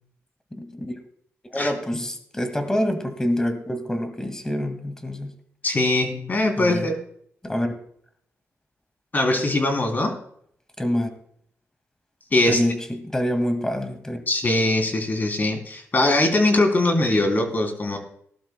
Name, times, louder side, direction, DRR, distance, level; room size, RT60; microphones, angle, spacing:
voice 1, 0.5-1.0 1.5-5.3 6.6-6.9 7.4-7.7 10.8-11.1 12.5-14.2, equal, 10° left, 7 dB, 1.9 m, -26 dB
voice 2, 5.6-7.0 9.1-10.2 12.3-12.6 14.3-18.0, left 2 dB, 35° left, 4 dB, 3.0 m, -21 dB
19.5 x 11.5 x 2.2 m, 0.66 s
cardioid pair, 90°, 5 cm